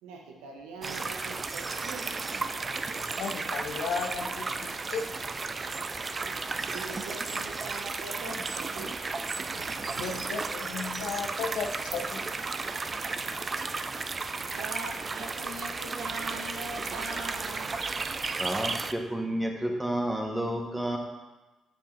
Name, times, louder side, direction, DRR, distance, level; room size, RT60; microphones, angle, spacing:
voice 1, 0.0-2.2 6.7-9.0 9.5-10.0 13.2-13.5 14.5-17.7, right 3 dB, 90° right, 2 dB, 0.8 m, -42 dB
sound 1, 0.8-18.9, right 4 dB, 40° right, 0.4 m, -34 dB
voice 2, 3.0-5.2 10.0-12.2, left 5 dB, 75° left, 5 dB, 0.6 m, -35 dB
voice 3, 18.4-21.0, right 1 dB, 10° right, 1 dB, 1.3 m, -30 dB
9.0 x 5.2 x 2.6 m, 1.1 s
supercardioid pair, 55°, 0 cm